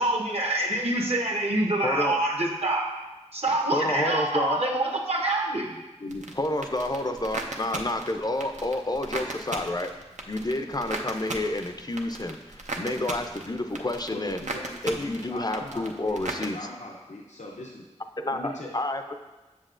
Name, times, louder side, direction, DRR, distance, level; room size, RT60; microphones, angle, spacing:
voice 1, 0.0-2.9 3.3-5.7, right 1 dB, 60° right, 1 dB, 1.0 m, -26 dB
voice 2, 1.8-2.2 3.7-4.6 6.4-9.9 10.3-14.4 14.8-16.6 18.2-19.1, left 1 dB, 35° left, 6 dB, 0.4 m, -29 dB
voice 3, 6.0-6.3 14.1-17.8 18.3-18.7, left 2 dB, 90° left, -2 dB, 0.6 m, -39 dB
sound 1, 6.1-16.5, right 2 dB, 80° right, 0.6 m, -37 dB
7.5 x 6.8 x 2.5 m, 1.1 s
wide cardioid pair, 50°, 12 cm